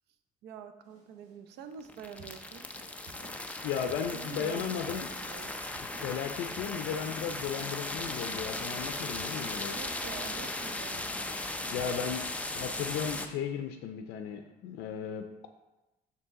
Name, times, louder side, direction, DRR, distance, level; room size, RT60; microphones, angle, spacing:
voice 1, 0.4-2.7 4.1-5.5 9.7-11.1, right 7 dB, 75° right, 8 dB, 0.7 m, -46 dB
sound 1, 0.8-12.9, right 1 dB, 50° right, 2.4 m, -53 dB
sound 2, 1.8-13.3, left 2 dB, 10° left, 0.6 m, -37 dB
voice 2, 3.6-5.1 6.0-9.8 11.7-12.2 12.5-15.5, left 8 dB, 85° left, 6 dB, 0.5 m, -35 dB
6.8 x 5.5 x 3.6 m, 1.0 s
cardioid pair, 110°, 17 cm